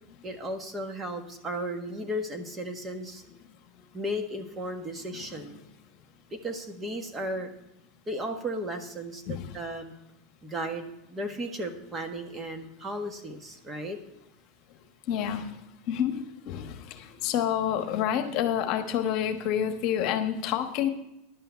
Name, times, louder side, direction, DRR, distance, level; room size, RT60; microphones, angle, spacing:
voice 1, 0.2-3.2 3.9-5.6 6.3-7.5 8.1-9.9 10.4-14.0, equal, 20° right, 5 dB, 1.5 m, -35 dB
voice 2, 15.1-20.9, left 9 dB, 55° left, 7 dB, 1.1 m, -29 dB
11.0 x 5.7 x 8.1 m, 0.86 s
supercardioid pair, 115°, 0 cm